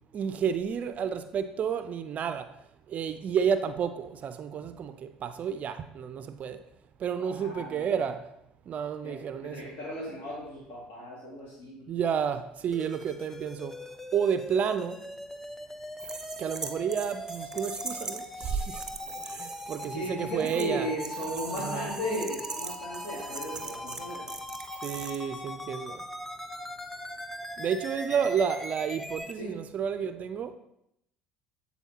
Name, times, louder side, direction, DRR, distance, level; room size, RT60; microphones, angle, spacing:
voice 1, 0.1-2.5 2.9-6.6 7.0-8.2 8.7-9.7 11.9-13.8 14.1-15.0 16.4-18.8 19.3-20.9 21.5-21.9 24.8-26.0 27.6-30.6, right 7 dB, 45° right, 0.4 m, -31 dB
voice 2, 7.2-7.9 9.0-11.9 19.8-24.3 28.1-28.2 29.4-29.5, equal, 60° left, 2.2 m, -36 dB
sound 1, 12.7-29.3, left 1 dB, 10° left, 0.5 m, -41 dB
sound 2, 16.0-19.9 20.4-20.7 21.0-25.2, right 3 dB, 20° right, 0.8 m, -40 dB
8.3 x 4.1 x 2.8 m
hypercardioid pair, 75°, 3 cm